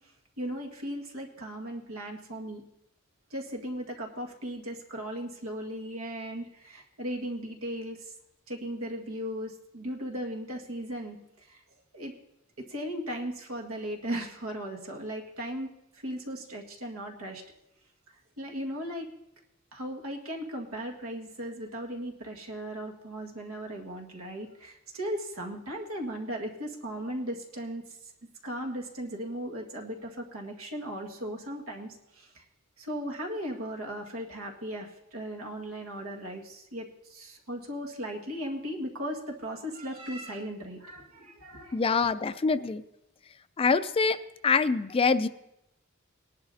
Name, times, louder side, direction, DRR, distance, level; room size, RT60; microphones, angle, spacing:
voice 1, 0.4-2.6 3.3-8.1 8.5-11.2 11.5-11.6 11.9-12.1 12.6-15.7 16.0-17.4 18.4-19.1 19.7-28.1 28.4-32.4 32.8-41.8, equal, 85° right, 1 dB, 1.8 m, -37 dB
voice 2, 41.7-42.8 43.6-44.2 44.4-45.3, left 4 dB, 25° left, 14 dB, 0.3 m, -25 dB
19.5 x 11.0 x 2.7 m, 0.86 s
head